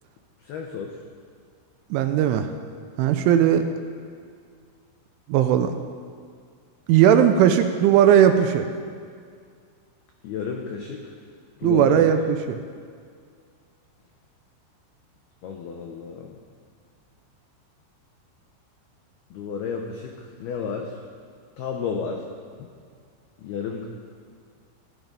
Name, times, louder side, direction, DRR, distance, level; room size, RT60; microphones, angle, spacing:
voice 1, 0.4-0.9 10.2-11.2 11.6-12.1 15.4-16.4 19.3-21.0 21.6-22.2 22.6-22.7 23.4-23.9, left 6 dB, 90° left, 1 dB, 2.2 m, -32 dB
voice 2, 1.9-2.5 3.0-3.6 5.3-5.8 6.9-8.7 11.6-12.6, right 9 dB, 80° right, 7 dB, 2.9 m, -18 dB
15.5 x 14.0 x 5.3 m, 2.1 s
omnidirectional pair, 5.9 m